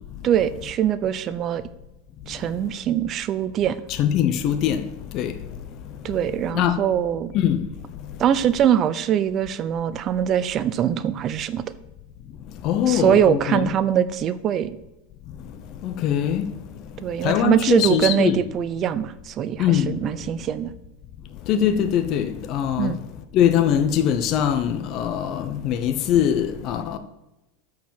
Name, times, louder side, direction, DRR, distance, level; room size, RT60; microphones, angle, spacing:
voice 1, 0.2-1.6 2.3-3.8 6.0-7.3 8.2-11.6 12.9-14.8 17.0-20.7 22.8-23.0, right 9 dB, 35° right, 0.7 m, -22 dB
voice 2, 3.9-4.9 5.1-5.3 6.5-6.8 7.3-7.7 12.6-13.7 15.8-16.5 17.2-18.4 19.6-20.0 21.5-23.0 23.3-27.0, left 9 dB, 40° left, 0.8 m, -22 dB
13.0 x 4.8 x 7.5 m
supercardioid pair, 135°, 0 cm